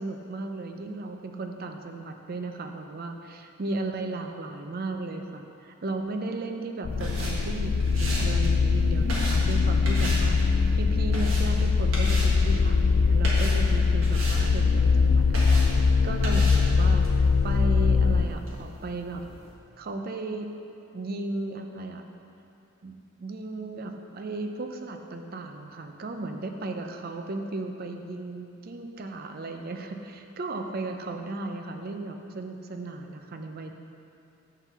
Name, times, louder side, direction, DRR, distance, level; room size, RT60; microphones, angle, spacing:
voice 1, 0.0-19.3 19.8-20.5 20.9-22.0 22.8-33.7, right 2 dB, 45° right, 5 dB, 0.5 m, -35 dB
sound 1, 6.9-18.3, left 4 dB, 65° left, 0.4 m, -22 dB
sound 2, 6.9-19.5, right 1 dB, 70° right, 1.7 m, -38 dB
7.4 x 3.9 x 6.7 m, 2.7 s
head